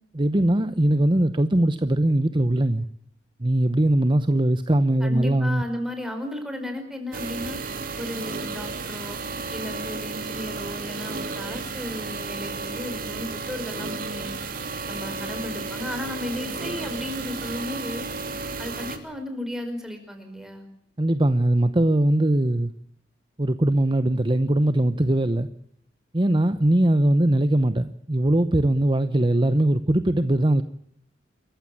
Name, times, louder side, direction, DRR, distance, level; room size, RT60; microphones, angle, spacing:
voice 1, 0.1-2.9 3.4-5.6 21.0-22.7 23.4-25.5 26.1-30.6, right 1 dB, 25° right, 0.9 m, -21 dB
voice 2, 5.0-7.6 8.0-9.2 9.5-14.4 14.9-18.1 18.6-20.7, left 1 dB, 5° right, 5.0 m, -34 dB
sound 1, 7.1-19.0, right 4 dB, 50° right, 2.8 m, -33 dB
28.0 x 15.0 x 8.6 m
head